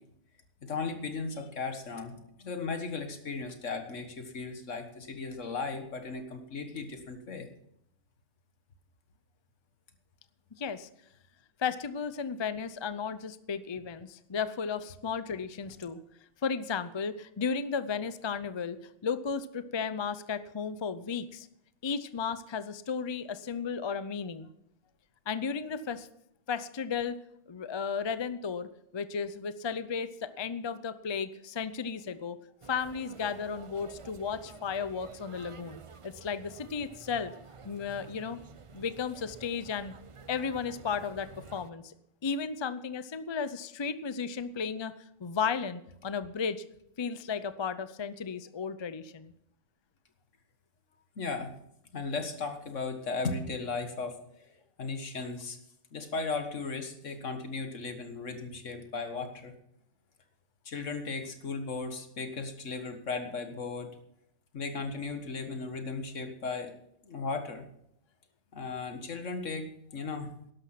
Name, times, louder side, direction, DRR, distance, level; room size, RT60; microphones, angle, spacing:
voice 1, 0.6-7.5 51.2-51.6 51.9-55.6 55.9-59.5 60.7-63.9 64.5-66.8 67.0-67.6 68.5-70.3, left 4 dB, 65° left, 7 dB, 1.9 m, -36 dB
voice 2, 10.6-10.9 11.6-16.0 16.4-18.8 19.0-21.5 21.8-24.5 25.3-26.1 26.5-27.2 27.5-32.4 32.7-37.3 37.6-38.4 38.7-39.9 40.3-41.9 42.2-44.9 45.2-46.6 47.0-49.3, left 6 dB, 35° left, 13 dB, 0.4 m, -34 dB
sound 1, 32.6-41.7, right 5 dB, 40° right, 0.4 m, -50 dB
12.5 x 11.0 x 5.8 m, 0.75 s
omnidirectional pair, 1.4 m